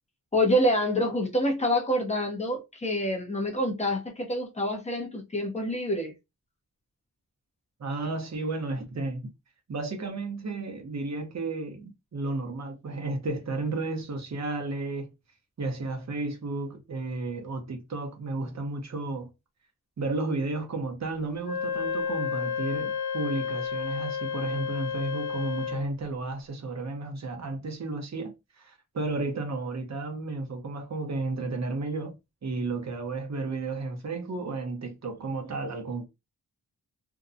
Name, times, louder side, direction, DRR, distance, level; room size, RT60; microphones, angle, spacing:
voice 1, 0.3-6.1, equal, 20° left, 0.7 m, -27 dB
voice 2, 7.8-9.3 9.7-15.1 15.6-19.3 20.0-28.3 28.6-32.1 32.4-36.0, right 3 dB, 45° right, 0.8 m, -33 dB
Wind instrument woodwind instrument, 21.4-25.9, left 7 dB, 80° left, 0.7 m, -31 dB
2.7 x 2.1 x 2.5 m
wide cardioid pair, 115°, 37 cm